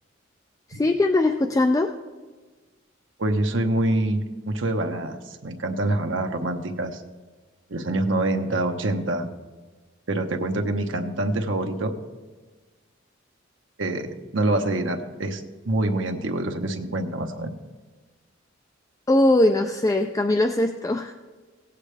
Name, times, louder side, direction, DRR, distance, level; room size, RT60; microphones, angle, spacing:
voice 1, 0.7-1.9 19.1-21.1, left 2 dB, 15° left, 5 dB, 0.4 m, -20 dB
voice 2, 3.2-7.0 7.7-9.3 10.1-11.9 13.8-17.5, right 2 dB, 75° right, 5 dB, 1.0 m, -26 dB
17.5 x 8.3 x 3.3 m, 1.3 s
head